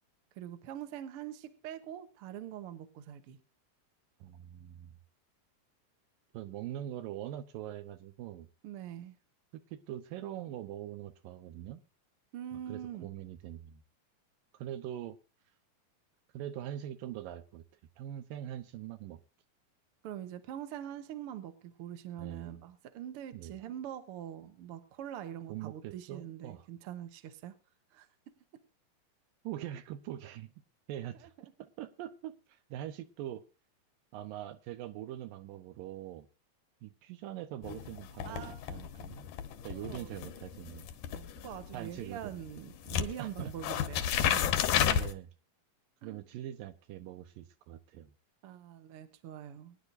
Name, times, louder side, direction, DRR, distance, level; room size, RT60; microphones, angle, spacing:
voice 1, 0.3-3.4 8.6-9.2 12.3-13.1 20.0-27.5 27.9-28.1 31.2-31.3 38.2-38.6 39.6-40.1 41.1-44.6 46.0-46.2 48.4-49.8, right 10 dB, 60° right, 9 dB, 1.5 m, -44 dB
voice 2, 4.2-5.0 6.3-8.5 9.5-11.8 12.7-13.8 14.5-15.2 16.3-17.6 18.0-19.2 22.2-22.6 23.3-23.5 25.5-26.7 29.4-30.5 30.9-31.3 31.8-33.4 34.1-36.3 36.8-39.3 39.6-40.9 41.7-42.3 43.2-43.5 44.9-45.3 46.0-48.1, right 12 dB, 80° right, 10 dB, 2.6 m, -43 dB
sound 1, 37.6-42.6 42.9-45.1, left 10 dB, 70° left, 2.3 m, -32 dB
22.5 x 10.0 x 2.6 m, 0.32 s
omnidirectional pair, 4.0 m